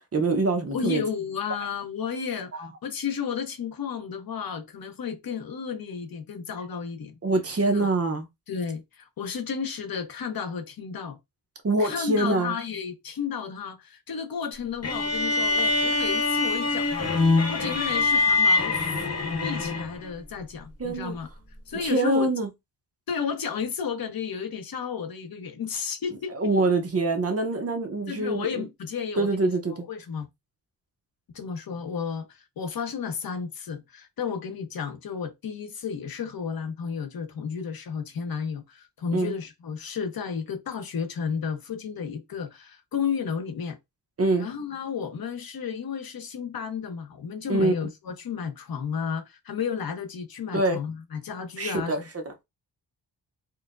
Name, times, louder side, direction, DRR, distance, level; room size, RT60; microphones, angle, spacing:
voice 1, 0.1-1.0 2.5-2.7 7.2-8.3 11.6-12.5 20.8-21.1 21.7-22.5 26.3-28.6 29.2-29.9 39.1-39.3 44.2-44.5 47.5-47.7 50.5-50.8 51.6-52.3, right 2 dB, 35° right, 0.6 m, -25 dB
voice 2, 0.7-7.2 7.7-7.9 8.5-11.2 11.8-18.8 19.4-21.3 21.7-22.3 23.1-26.3 28.1-30.3 31.3-43.8 44.4-52.0, left 6 dB, 55° left, 0.7 m, -32 dB
sound 1, 14.8-20.1, left 3 dB, 35° left, 1.0 m, -24 dB
4.4 x 2.1 x 2.3 m
wide cardioid pair, 130°, 42 cm